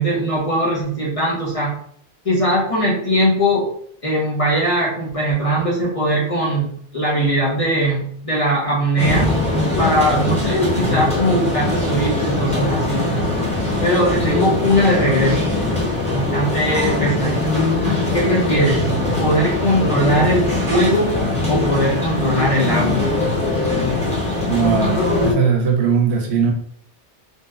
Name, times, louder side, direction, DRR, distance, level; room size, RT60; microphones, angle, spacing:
voice 1, 0.0-1.7 2.2-3.7 4.0-9.3 9.8-13.1 13.8-15.6 16.1-17.5 18.1-18.9 19.2-21.1 21.5-23.1, equal, 40° left, -6 dB, 0.5 m, -20 dB
sound 1, 9.0-25.3, left 2 dB, 5° left, 0.7 m, -21 dB
voice 2, 24.5-26.5, right 6 dB, 75° right, 0 dB, 0.9 m, -19 dB
2.7 x 2.1 x 2.3 m, 0.65 s
omnidirectional pair, 1.2 m